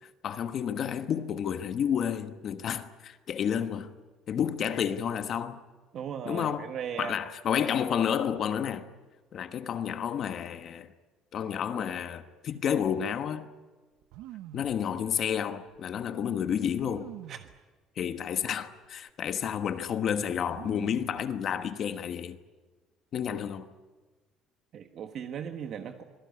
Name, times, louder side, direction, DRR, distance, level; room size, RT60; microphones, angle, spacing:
voice 1, 0.2-3.9 4.3-5.6 6.2-6.7 7.0-8.9 9.3-10.9 11.3-13.5 14.5-17.1 18.0-22.4 23.1-23.7, left 8 dB, 40° left, 1.2 m, -30 dB
voice 2, 5.9-7.2 17.3-17.4 24.7-26.0, right 8 dB, 45° right, 1.4 m, -37 dB
sound 1, 14.0-14.8 15.7-15.8 16.8-17.6 18.4-18.5 18.8-19.3 20.5-21.3 21.6-22.1, right 14 dB, 85° right, 1.0 m, -45 dB
26.5 x 20.0 x 9.6 m
cardioid pair, 170°, 0 cm